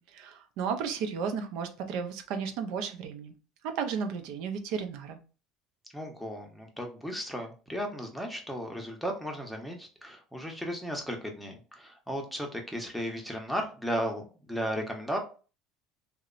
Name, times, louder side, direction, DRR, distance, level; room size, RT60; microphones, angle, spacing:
voice 1, 0.0-3.3 3.6-5.2, right 6 dB, 70° right, 7 dB, 0.5 m, -34 dB
voice 2, 5.9-15.2, equal, ahead, 1 dB, 0.7 m, -35 dB
2.7 x 2.0 x 2.4 m, 0.35 s
supercardioid pair, 115°, 0 cm